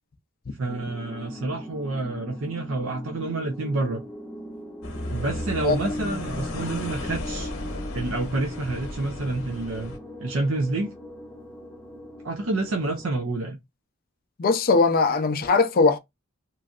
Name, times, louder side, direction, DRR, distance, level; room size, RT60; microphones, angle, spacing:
voice 1, 0.6-4.0 5.1-7.5 7.9-9.9 10.2-10.9 12.2-13.6, right 2 dB, 65° right, 0.6 m, -28 dB
sound 1, 0.7-13.1, equal, 5° left, 0.7 m, -39 dB
sound 2, 4.8-10.0, left 1 dB, 75° left, 0.9 m, -34 dB
voice 2, 14.4-16.0, left 4 dB, 45° left, 0.4 m, -20 dB
3.0 x 2.5 x 2.4 m
head